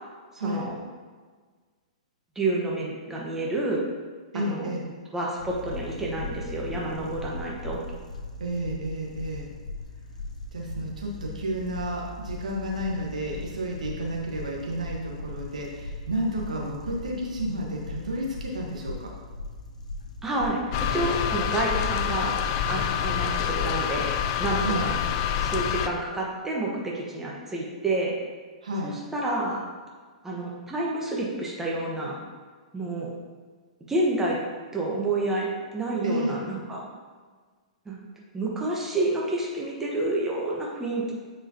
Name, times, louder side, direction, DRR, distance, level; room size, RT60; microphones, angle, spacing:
voice 1, 0.3-0.7 2.3-3.8 4.3-4.7 5.1-7.8 20.2-22.4 22.7-24.1 24.4-24.9 25.4-28.1 28.8-29.6 30.2-32.2 32.7-33.1 33.9-34.4 34.7-36.8 37.8-38.0 38.3-41.1, right 2 dB, 10° right, -4 dB, 1.4 m, -29 dB
voice 2, 4.3-4.9 8.4-9.5 10.5-19.1 24.6-24.9 28.6-28.9 36.0-36.4, right 1 dB, 85° right, -2 dB, 1.5 m, -31 dB
sound 1, 5.4-20.9, left 2 dB, 90° left, 0.7 m, -39 dB
sound 2, 20.7-25.9, left 9 dB, 45° left, 0.5 m, -27 dB
8.6 x 4.9 x 2.9 m, 1.5 s
hypercardioid pair, 120°, 4 cm